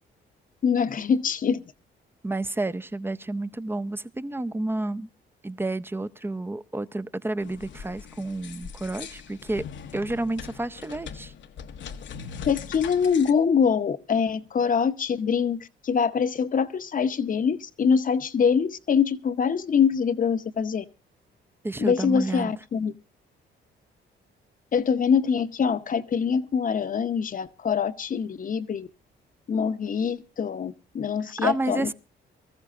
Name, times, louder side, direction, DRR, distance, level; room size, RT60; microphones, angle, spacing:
voice 1, 0.6-1.6 12.4-20.8 21.8-22.9 24.7-28.9 29.5-31.9, left 6 dB, 45° left, 0.8 m, -24 dB
voice 2, 2.2-5.1 5.4-9.6 9.9-11.3 21.6-22.5 31.2-31.9, right 2 dB, 10° right, 0.6 m, -30 dB
sound 1, 7.4-13.3, left 7 dB, 65° left, 1.0 m, -41 dB
24.0 x 14.0 x 2.5 m
cardioid pair, 90°, 20 cm